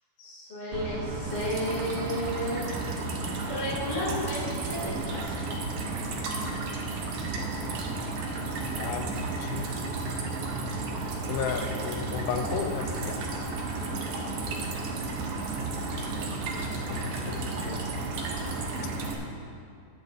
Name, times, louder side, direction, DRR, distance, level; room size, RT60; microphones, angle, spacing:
voice 1, 0.2-2.6 3.1-5.6 13.8-14.2, equal, 20° left, -8 dB, 2.7 m, -33 dB
sound 1, 0.7-19.1, right 3 dB, 80° right, 2.9 m, -35 dB
sound 2, 1.3-19.2, right 3 dB, 65° right, 2.4 m, -37 dB
voice 2, 8.7-9.1 9.4-9.8 11.3-13.2 16.8-17.9, left 6 dB, 80° left, 5 dB, 2.8 m, -34 dB
22.0 x 9.1 x 2.8 m, 2.5 s
omnidirectional pair, 4.4 m